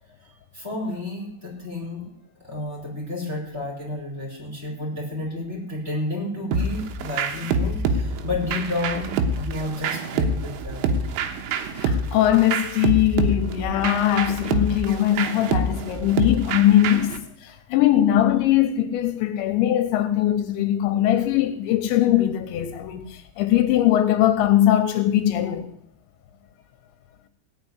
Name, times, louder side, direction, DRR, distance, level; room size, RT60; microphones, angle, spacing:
voice 1, 0.2-2.1 2.4-11.0 17.5-17.6, left 2 dB, 15° right, 5.2 m, -31 dB
sound 1, 6.5-17.2, right 3 dB, 90° right, 3.7 m, -26 dB
voice 2, 11.7-17.1 17.4-25.7, left 12 dB, 80° left, 3.0 m, -21 dB
17.5 x 6.1 x 9.8 m
omnidirectional pair, 5.4 m